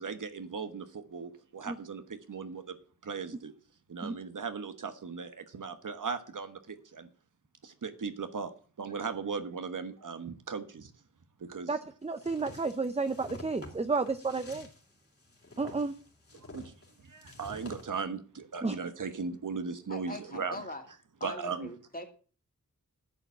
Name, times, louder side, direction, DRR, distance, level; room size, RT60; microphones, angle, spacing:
voice 1, 0.0-2.8 3.0-3.5 3.9-7.1 7.6-10.9 11.4-11.7 16.5-16.7 17.0-20.6 21.2-21.7, right 5 dB, 80° right, 9 dB, 1.2 m, -38 dB
voice 2, 11.7-14.7 15.6-15.9 18.6-18.7, right 4 dB, 20° right, 9 dB, 0.6 m, -31 dB
sound 1, 12.2-17.9, left 2 dB, 45° left, 3.1 m, -50 dB
voice 3, 19.9-20.8 21.2-22.1, left 2 dB, 30° left, 4 dB, 2.4 m, -41 dB
10.5 x 7.2 x 7.1 m, 0.40 s
wide cardioid pair, 100°, 31 cm